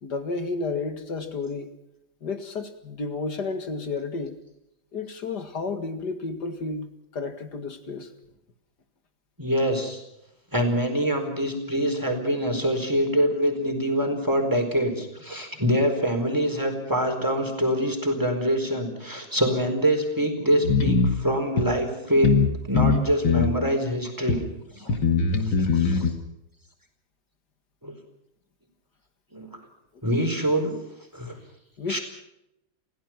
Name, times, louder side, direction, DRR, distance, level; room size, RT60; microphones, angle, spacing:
voice 1, 0.0-1.7 2.2-4.4 4.9-8.1 31.8-32.0, left 3 dB, 60° left, 8 dB, 2.5 m, -31 dB
voice 2, 9.4-10.0 10.5-22.4 22.6-24.4 24.7-25.0 25.4-26.1 27.8-27.9 29.3-29.5 30.0-30.7 31.1-31.4 31.9-32.0, equal, 10° right, 4 dB, 4.4 m, -25 dB
sound 1, 20.6-21.1 21.6-21.7 22.2-22.5 22.7-23.5 24.3-24.4 24.9-26.1, left 5 dB, 75° left, 2.7 m, -21 dB
29.5 x 16.5 x 6.0 m, 0.84 s
omnidirectional pair, 2.1 m